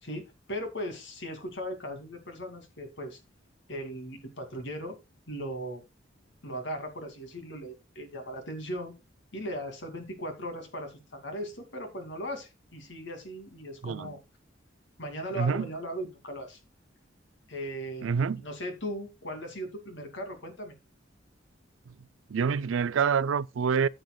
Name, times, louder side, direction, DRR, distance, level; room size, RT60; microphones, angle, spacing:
voice 1, 0.0-3.2 3.7-5.0 5.3-5.8 6.4-8.9 9.3-14.2 15.0-16.6 17.5-18.1 18.4-20.7, equal, 65° left, 2.5 m, -38 dB
voice 2, 13.8-14.1 15.3-15.7 18.0-18.4 22.3-23.9, right 6 dB, 80° right, 0.4 m, -27 dB
14.0 x 7.9 x 2.3 m
head